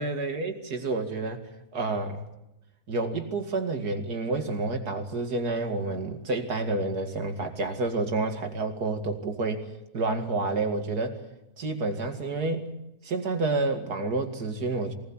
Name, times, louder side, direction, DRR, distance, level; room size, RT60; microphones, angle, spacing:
voice 1, 0.0-1.5 1.7-2.2 2.9-9.7 9.9-11.2 11.6-12.7 13.0-14.9, right 3 dB, 90° right, 5 dB, 2.8 m, -29 dB
24.0 x 18.5 x 8.9 m, 0.91 s
omnidirectional pair, 1.6 m